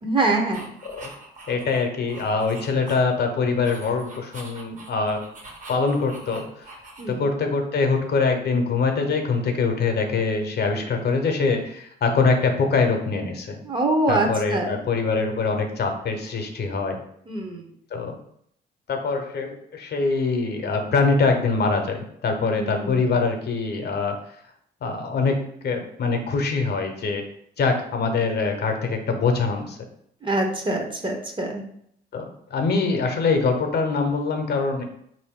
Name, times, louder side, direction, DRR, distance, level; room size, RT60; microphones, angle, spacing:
voice 1, 0.0-0.7 7.0-7.2 13.6-14.8 17.3-17.7 22.5-23.2 30.2-31.6, right 2 dB, 25° right, 2 dB, 0.7 m, -24 dB
sound 1, 0.5-3.2 3.5-7.3, right 2 dB, 40° right, 1.0 m, -44 dB
voice 2, 1.5-5.2 5.7-6.4 7.1-13.6 14.1-17.0 17.9-18.1 18.9-24.2 24.8-25.4 25.6-27.2 27.6-29.8 32.1-34.8, left 4 dB, 55° left, 4 dB, 0.8 m, -23 dB
3.7 x 2.6 x 3.6 m, 0.70 s
cardioid pair, 90°, 20 cm